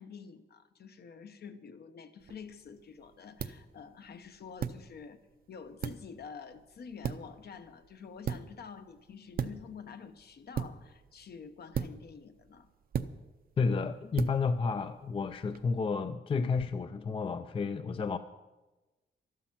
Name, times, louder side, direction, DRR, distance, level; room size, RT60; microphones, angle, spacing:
voice 1, 0.0-5.2 5.5-12.7, left 6 dB, 55° left, 0.9 m, -48 dB
sound 1, 2.2-15.7, right 7 dB, 50° right, 0.6 m, -41 dB
voice 2, 13.6-18.2, left 4 dB, 30° left, 0.4 m, -31 dB
13.0 x 12.0 x 5.9 m
wide cardioid pair, 175°, 20 cm